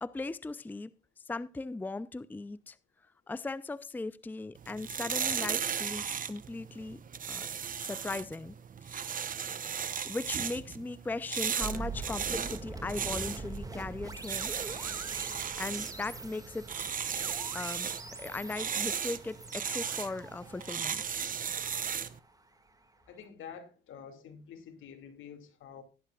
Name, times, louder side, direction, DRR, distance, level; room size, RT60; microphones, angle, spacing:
voice 1, 0.0-0.9 1.3-2.8 3.3-7.0 7.3-7.5 7.8-8.6 8.8-9.1 10.0-14.5 15.6-16.9 17.5-17.9 18.2-21.2, left 3 dB, 10° left, 0.5 m, -38 dB
sound 1, 4.6-22.2, right 7 dB, 45° right, 0.9 m, -36 dB
sound 2, 11.6-22.6, right 3 dB, 15° right, 2.0 m, -44 dB
voice 2, 23.1-25.8, left 7 dB, 80° left, 2.4 m, -48 dB
17.5 x 11.0 x 2.4 m
cardioid pair, 90°, 20 cm